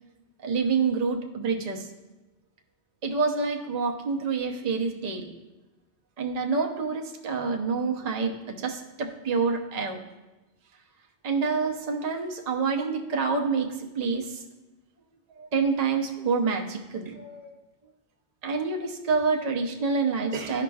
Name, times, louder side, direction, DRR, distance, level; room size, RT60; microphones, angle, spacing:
voice 1, 0.4-1.9 3.0-5.3 6.2-10.0 11.2-14.4 15.4-17.5 18.4-20.6, right 4 dB, 40° right, 2 dB, 0.7 m, -27 dB
11.5 x 4.9 x 2.3 m, 1.1 s
omnidirectional pair, 1.2 m